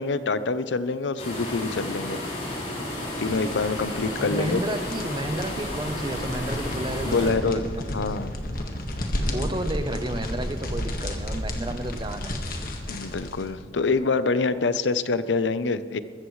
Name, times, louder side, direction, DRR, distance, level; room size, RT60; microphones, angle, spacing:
voice 1, 0.0-2.2 3.2-4.6 7.0-7.6 7.9-8.3 12.9-16.0, left 4 dB, 90° left, 13 dB, 0.6 m, -26 dB
sound 1, 1.2-7.3, left 1 dB, 35° left, 4.8 m, -32 dB
sound 2, 2.9-13.6, left 1 dB, 50° left, 1.6 m, -33 dB
voice 2, 4.2-7.8 9.3-12.4, right 1 dB, 25° right, 9 dB, 0.8 m, -31 dB
21.5 x 15.0 x 3.2 m, 2.2 s
head